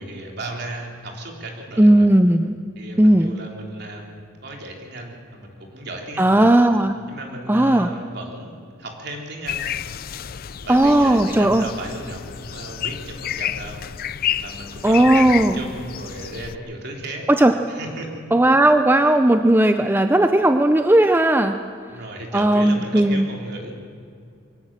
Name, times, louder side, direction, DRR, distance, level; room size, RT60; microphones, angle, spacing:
voice 1, 0.0-2.1 2.8-4.2 4.4-6.5 7.1-9.7 10.5-13.8 14.4-17.3 17.7-18.2 21.9-23.7, right 1 dB, 55° right, 1 dB, 3.4 m, -35 dB
voice 2, 1.8-2.6 3.0-3.3 6.2-6.9 7.5-7.9 10.7-11.6 14.8-15.6 17.3-17.5 18.3-21.6 22.3-23.2, right 1 dB, 10° right, 8 dB, 0.5 m, -16 dB
sound 1, 9.5-16.6, left 10 dB, 50° left, 0.5 m, -30 dB
23.5 x 17.0 x 7.4 m, 2.4 s
head